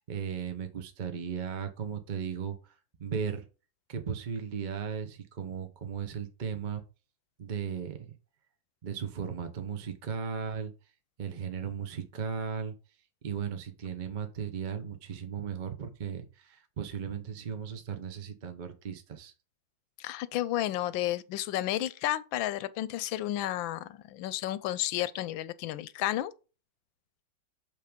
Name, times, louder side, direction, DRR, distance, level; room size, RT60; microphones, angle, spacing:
voice 1, 0.0-3.5 3.9-6.8 7.4-8.0 8.8-10.7 11.2-12.7 13.2-19.3, right 7 dB, 40° right, 0.7 m, -36 dB
voice 2, 20.0-26.3, left 14 dB, 90° left, 1.3 m, -32 dB
7.5 x 3.6 x 5.1 m
omnidirectional pair, 2.0 m